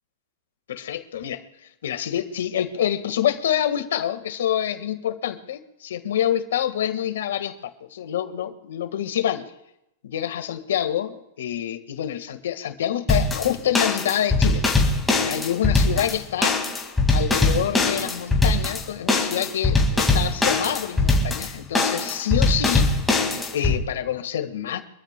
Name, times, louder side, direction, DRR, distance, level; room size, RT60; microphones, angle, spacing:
voice 1, 0.7-1.4 1.8-7.6 7.9-9.5 10.0-14.6 15.2-16.6 17.1-22.9 23.5-24.8, left 10 dB, 85° left, 8 dB, 1.6 m, -26 dB
sound 1, 13.1-23.8, left 2 dB, 5° left, 2.1 m, -21 dB
26.0 x 14.0 x 2.3 m, 0.84 s
supercardioid pair, 160°, 0 cm